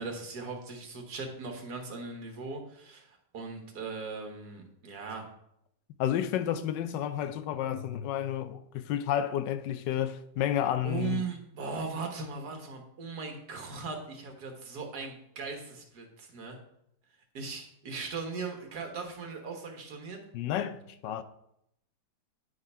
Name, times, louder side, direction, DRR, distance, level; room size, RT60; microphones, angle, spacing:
voice 1, 0.0-5.3 10.8-16.6 17.3-20.2, right 4 dB, 65° right, 1.8 m, -38 dB
voice 2, 6.0-11.2 20.3-21.2, left 10 dB, 90° left, 1.3 m, -31 dB
9.5 x 3.8 x 5.5 m
omnidirectional pair, 1.9 m